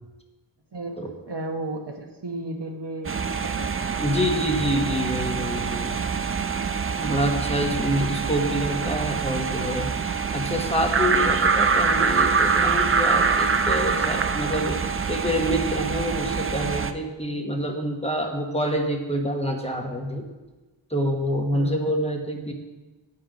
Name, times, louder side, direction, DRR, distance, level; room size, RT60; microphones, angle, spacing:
voice 1, 0.7-3.7 6.0-6.1 7.2-8.0 17.5-17.6 21.5-21.9, right 2 dB, 55° right, 3 dB, 1.1 m, -35 dB
sound 1, 3.0-16.9, right 5 dB, 30° right, 0.5 m, -25 dB
voice 2, 4.0-5.9 7.0-9.9 10.3-14.8 15.1-20.2 20.9-22.5, equal, 15° left, 2 dB, 1.1 m, -26 dB
8.4 x 5.6 x 5.1 m, 1.2 s
wide cardioid pair, 40°, 48 cm